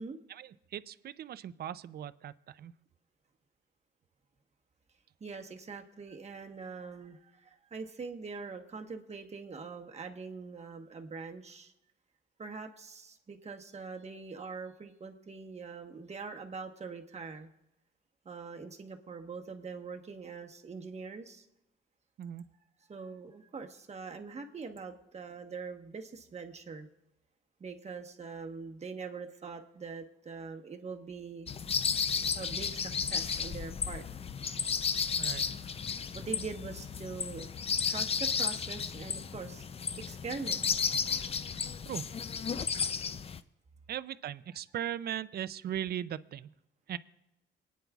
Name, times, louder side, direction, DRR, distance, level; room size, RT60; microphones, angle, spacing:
voice 1, 0.3-2.7 22.2-22.4 35.2-35.5 41.8-42.1 43.9-46.5 46.9-47.0, right 10 dB, 55° right, 15 dB, 0.5 m, -38 dB
voice 2, 5.2-11.7 12.4-17.5 18.2-21.5 22.9-26.9 27.6-31.5 32.3-34.3 36.1-37.5 37.8-40.6, right 4 dB, 35° right, 4 dB, 1.2 m, -43 dB
sound 1, 31.5-43.4, left 6 dB, 30° left, 0.4 m, -33 dB
27.5 x 9.5 x 2.4 m, 0.88 s
cardioid pair, 90°, 20 cm